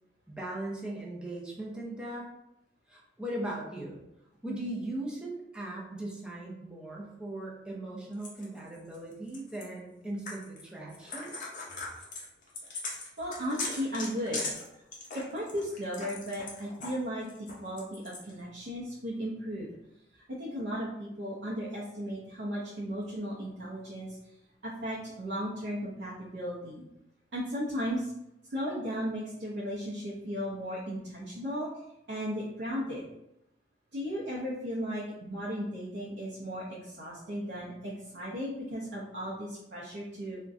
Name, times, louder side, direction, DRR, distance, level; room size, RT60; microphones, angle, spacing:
voice 1, 0.3-2.3 2.9-4.0 4.4-11.3, right 1 dB, 5° right, -4 dB, 0.5 m, -38 dB
sound 1, 8.2-9.6 10.3-10.6 10.9-17.0 17.3-18.3, left 3 dB, 45° left, 0.6 m, -39 dB
voice 2, 12.9-14.4 15.1-19.7 20.1-24.2 24.6-26.8 27.3-28.1 28.5-31.7 32.1-33.0 33.9-40.4, equal, 75° right, -7 dB, 0.6 m, -36 dB
3.6 x 2.1 x 2.5 m, 0.85 s
head